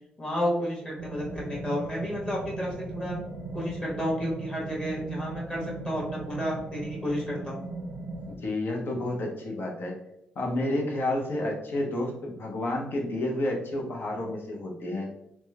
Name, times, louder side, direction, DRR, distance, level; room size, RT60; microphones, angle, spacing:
voice 1, 0.2-3.2 3.5-7.6, equal, 25° left, -4 dB, 1.2 m, -31 dB
sound 1, 1.0-8.3, right 3 dB, 75° right, 0.5 m, -37 dB
voice 2, 8.3-10.0 10.4-15.1, left 1 dB, 60° left, -1 dB, 0.6 m, -30 dB
2.9 x 2.1 x 2.2 m, 0.82 s
hypercardioid pair, 45°, 4 cm